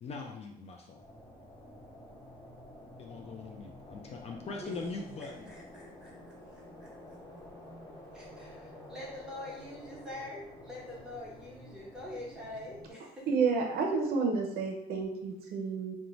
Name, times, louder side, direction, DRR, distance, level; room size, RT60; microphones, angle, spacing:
voice 1, 0.0-1.1 3.0-5.5, left 4 dB, 40° left, 2 dB, 0.4 m, -41 dB
sound 1, 1.0-12.9, left 1 dB, 20° left, 1.0 m, -50 dB
voice 2, 5.2-7.2 8.1-13.3, left 1 dB, 5° right, -6 dB, 1.0 m, -45 dB
voice 3, 13.3-15.9, right 4 dB, 65° right, 1 dB, 0.5 m, -30 dB
2.5 x 2.1 x 3.0 m, 0.81 s
cardioid pair, 110°, 17 cm